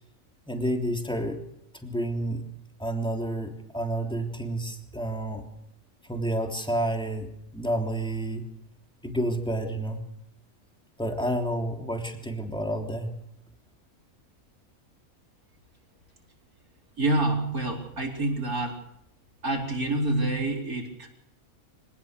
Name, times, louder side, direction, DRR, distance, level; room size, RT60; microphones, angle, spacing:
voice 1, 0.5-1.4 1.8-2.4 2.8-5.4 6.1-8.4 9.0-10.0 11.0-13.1, right 1 dB, 5° left, 2 dB, 3.3 m, -30 dB
voice 2, 17.0-18.8 19.4-21.1, right 2 dB, 90° right, 1 dB, 4.9 m, -27 dB
25.0 x 19.0 x 6.8 m, 0.76 s
omnidirectional pair, 1.5 m